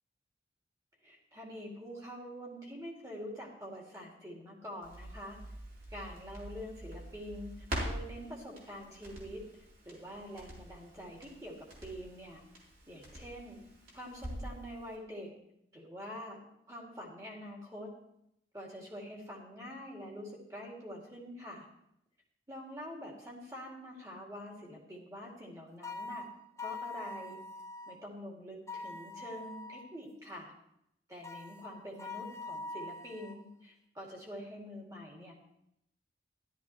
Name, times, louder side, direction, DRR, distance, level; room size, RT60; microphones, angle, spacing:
voice 1, 1.0-5.4 5.9-9.4 9.8-11.6 11.8-12.4 12.9-13.6 13.9-15.3 15.7-16.4 16.7-17.9 18.5-21.7 22.5-26.3 26.6-27.4 27.9-30.5 31.1-35.3, equal, 20° right, -2 dB, 2.6 m, -46 dB
Crackle, 4.8-14.6 14.9-15.0, right 1 dB, 50° right, 3.7 m, -45 dB
sound 1, 25.8-28.0 28.7-29.9 31.2-33.4, left 3 dB, 15° left, 0.5 m, -43 dB
13.5 x 12.0 x 3.2 m, 0.77 s
head